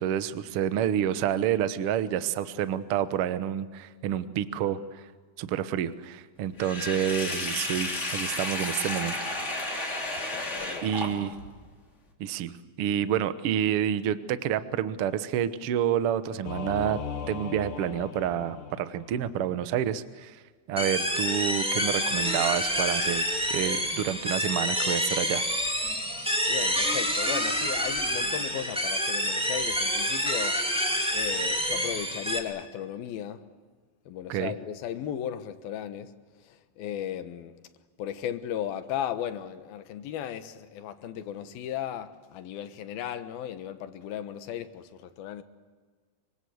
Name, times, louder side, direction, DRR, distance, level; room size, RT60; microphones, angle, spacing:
voice 1, 0.0-5.0 5.4-9.1 9.6-10.0 10.8-11.3 12.2-17.0 17.3-20.4 20.7-25.4 34.3-34.5, right 10 dB, 70° right, 1.3 m, -29 dB
Sink (filling or washing), 6.6-11.5, left 2 dB, 20° left, 3.3 m, -32 dB
voice 2, 10.3-10.9 20.7-20.9 26.1-33.5 34.1-36.1 36.4-37.6 38.0-45.4, left 10 dB, 85° left, 3.1 m, -36 dB
Singing / Musical instrument, 16.4-19.3, left 7 dB, 65° left, 2.9 m, -38 dB
sound 1, 20.8-32.4, equal, ahead, 2.0 m, -28 dB
26.0 x 24.5 x 7.9 m
omnidirectional pair, 4.1 m